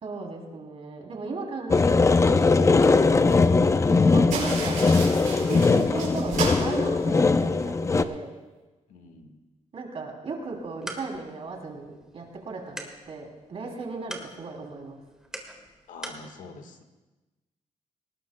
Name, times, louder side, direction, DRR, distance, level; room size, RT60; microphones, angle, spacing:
voice 1, 0.0-3.4 4.1-5.1 5.5-8.3 9.7-15.0, right 3 dB, 50° right, 0 dB, 3.1 m, -36 dB
sound 1, 1.7-8.0, left 4 dB, 25° left, 0.5 m, -20 dB
sound 2, 4.3-7.6, right 5 dB, 80° right, 5.6 m, -34 dB
voice 2, 8.9-9.4 15.9-16.8, left 4 dB, 80° left, 6 dB, 1.5 m, -45 dB
sound 3, 10.4-16.3, right 1 dB, 5° right, 1.8 m, -44 dB
19.5 x 18.0 x 2.2 m, 1.1 s
cardioid pair, 115°, 13 cm